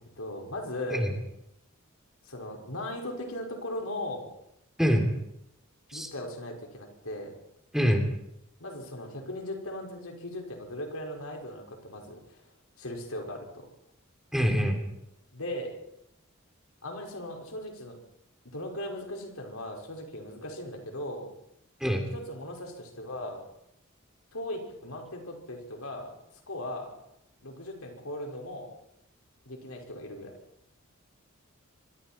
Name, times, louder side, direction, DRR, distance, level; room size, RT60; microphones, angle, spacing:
voice 1, 0.2-1.2 2.2-4.3 5.9-7.3 8.6-12.4 12.8-13.7 15.3-15.8 16.8-18.0 18.5-21.3 22.1-23.4 24.3-26.1 26.5-26.9 27.4-28.7 29.5-30.3, left 1 dB, 90° left, 1 dB, 5.5 m, -38 dB
voice 2, 4.8-5.1 5.9-6.1 7.7-8.1 14.3-14.8 21.8-22.0, equal, ahead, 2 dB, 3.2 m, -24 dB
25.5 x 24.5 x 4.5 m, 0.81 s
head